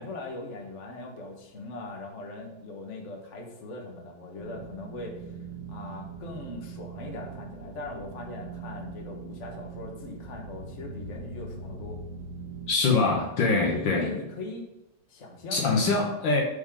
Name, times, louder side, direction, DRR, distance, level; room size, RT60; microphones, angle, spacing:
voice 1, 0.0-5.2 5.7-12.0 13.0-13.2 13.6-14.6 15.1-15.7, left 2 dB, 40° left, 1 dB, 1.5 m, -40 dB
sound 1, 4.4-12.7, right 4 dB, 50° right, 2.5 m, -41 dB
voice 2, 12.7-14.1 15.5-16.4, left 3 dB, 65° left, 0 dB, 1.7 m, -24 dB
11.0 x 5.2 x 3.8 m, 0.91 s
omnidirectional pair, 2.4 m